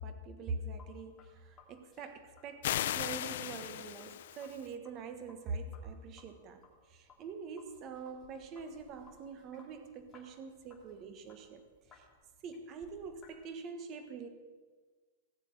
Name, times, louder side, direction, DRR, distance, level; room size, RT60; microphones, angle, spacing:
voice 1, 0.0-2.7 2.9-6.6 6.9-11.6 11.9-12.0 12.4-14.3, right 4 dB, 25° right, 8 dB, 1.4 m, -44 dB
Sink (filling or washing), 0.6-13.4, left 4 dB, 15° left, 2.6 m, -63 dB
sound 1, 2.6-4.7, left 12 dB, 60° left, 0.5 m, -36 dB
17.5 x 7.2 x 8.8 m, 1.4 s
supercardioid pair, 170°, 0 cm